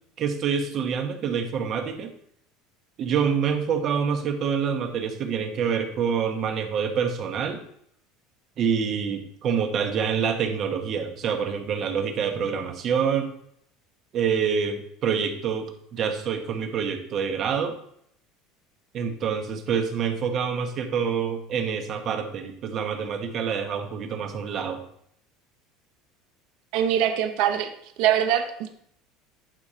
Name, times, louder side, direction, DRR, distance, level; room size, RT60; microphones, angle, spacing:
voice 1, 0.2-2.1 3.0-7.6 8.6-13.3 14.1-17.8 18.9-24.8, right 7 dB, 35° right, 6 dB, 1.1 m, -26 dB
voice 2, 26.7-27.7 28.0-28.7, right 10 dB, 65° right, 7 dB, 0.8 m, -23 dB
10.5 x 4.2 x 5.1 m, 0.69 s
cardioid pair, 155°, 0 cm